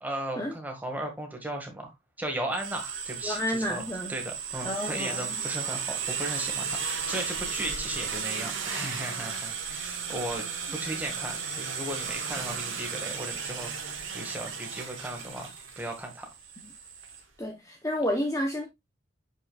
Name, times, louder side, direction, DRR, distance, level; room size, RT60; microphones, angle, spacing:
voice 1, 0.0-1.9 2.2-3.8 4.1-10.4 10.7-15.5 15.8-16.3, right 1 dB, 10° right, 1.6 m, -36 dB
sound 1, 2.5-17.2, right 6 dB, 70° right, 1.6 m, -35 dB
voice 2, 3.2-4.1 4.6-5.4 16.6-16.7 17.4-18.7, equal, 15° left, 0.8 m, -30 dB
7.1 x 5.9 x 2.3 m
head